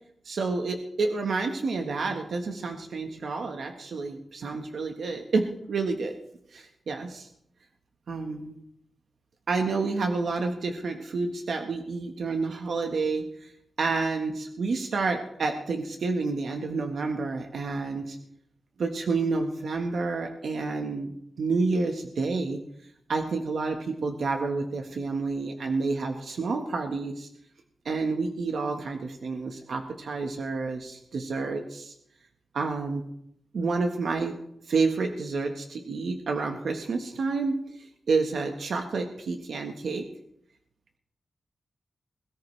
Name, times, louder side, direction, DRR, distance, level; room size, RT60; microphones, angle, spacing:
voice 1, 0.2-6.1 6.5-7.3 8.1-8.5 9.5-13.5 13.8-18.2 18.8-21.1 21.4-22.6 23.1-27.3 27.8-31.9 32.5-33.0 33.5-34.3 34.7-40.1, right 4 dB, 80° right, 4 dB, 1.4 m, -29 dB
22.0 x 13.5 x 3.3 m, 0.74 s
cardioid pair, 75°, 0 cm